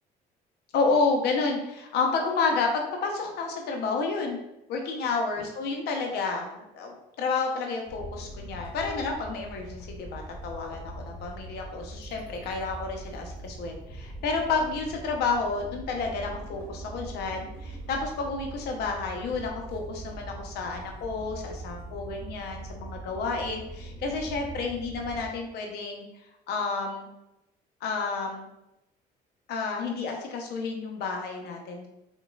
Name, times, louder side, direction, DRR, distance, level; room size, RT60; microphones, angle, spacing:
voice 1, 0.7-4.4 4.7-26.1 26.5-27.1 27.8-28.5 29.5-31.9, left 4 dB, 75° left, 2 dB, 0.8 m, -30 dB
sound 1, 7.9-25.3, right 2 dB, 15° left, 1.3 m, -42 dB
3.9 x 3.7 x 2.4 m, 0.90 s
cardioid pair, 110°, 17 cm